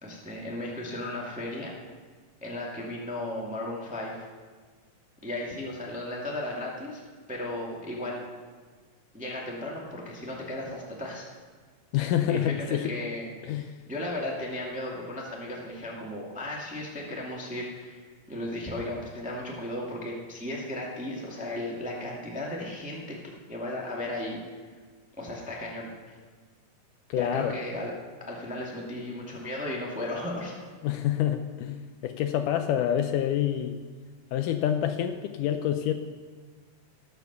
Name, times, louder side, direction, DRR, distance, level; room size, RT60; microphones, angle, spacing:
voice 1, 0.0-1.7 2.4-4.3 5.2-7.0 7.3-8.2 9.1-11.2 12.3-13.3 13.9-23.2 23.5-24.4 24.6-24.7 25.2-26.1 27.1-27.9 28.2-30.5, left 1 dB, 5° right, -3 dB, 1.1 m, -35 dB
voice 2, 11.9-13.0 13.4-13.7 27.1-27.6 30.8-33.8 34.3-35.9, left 10 dB, 80° left, 8 dB, 2.0 m, -27 dB
18.5 x 6.9 x 6.9 m, 1.5 s
omnidirectional pair, 4.0 m